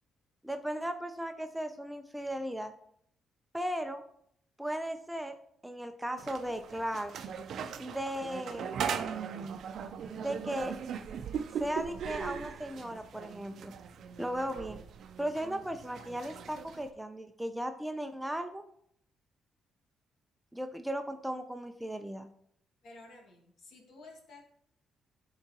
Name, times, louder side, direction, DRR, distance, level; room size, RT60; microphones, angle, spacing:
voice 1, 0.4-2.7 3.5-4.0 4.6-5.3 5.6-7.2 7.8-8.7 10.2-10.7 11.6-13.7 14.2-14.8 15.2-18.6 20.5-22.3, equal, 5° right, 7 dB, 0.5 m, -36 dB
sound 1, 6.2-16.9, right 7 dB, 65° right, 0.5 m, -39 dB
voice 2, 22.8-24.4, left 2 dB, 65° left, 0 dB, 1.9 m, -52 dB
11.5 x 3.9 x 2.9 m, 0.68 s
cardioid pair, 90°, 0 cm